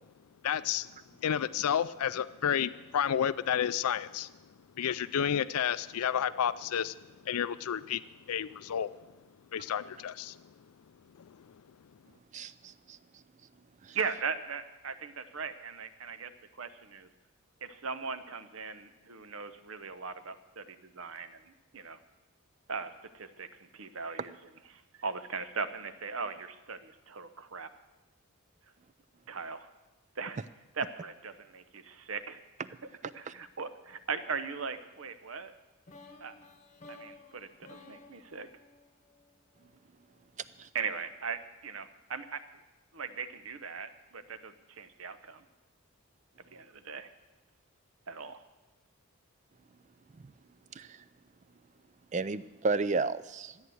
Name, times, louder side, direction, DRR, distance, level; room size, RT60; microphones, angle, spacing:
voice 1, 0.4-0.9 1.2-4.3 4.8-6.9 7.3-8.9 9.5-10.4 11.2-11.3, left 9 dB, 85° left, 16 dB, 0.4 m, -31 dB
voice 2, 12.3-13.0 13.8-14.0 40.6-40.7 50.2-50.3 50.7-51.0 52.1-53.6, right 3 dB, 35° right, 16 dB, 0.4 m, -33 dB
voice 3, 13.9-17.1 17.6-22.0 22.7-24.4 24.7-27.7 29.3-29.7 30.2-30.4 30.7-32.4 33.1-35.5 36.2-36.3 36.9-38.5 40.7-42.4 42.9-45.4 46.5-47.1 48.1-48.4, right 5 dB, 70° right, 11 dB, 0.9 m, -39 dB
sound 1, 35.9-39.8, left 3 dB, 35° left, 1.0 m, -54 dB
14.0 x 9.3 x 7.9 m, 1.1 s
head